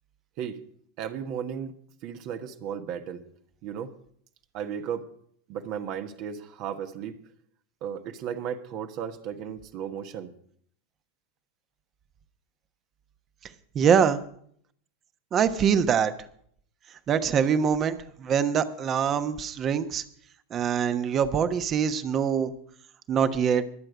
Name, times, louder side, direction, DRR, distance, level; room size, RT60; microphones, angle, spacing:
voice 1, 1.0-1.7 2.0-3.2 3.6-3.9 4.5-5.0 5.5-7.2 7.8-10.3, right 8 dB, 50° right, 7 dB, 1.4 m, -34 dB
voice 2, 13.7-14.2 15.3-16.1 17.1-20.0 20.5-22.5 23.1-23.6, right 7 dB, 35° right, 11 dB, 1.2 m, -24 dB
22.5 x 7.9 x 5.1 m, 0.63 s
hypercardioid pair, 90°, 0 cm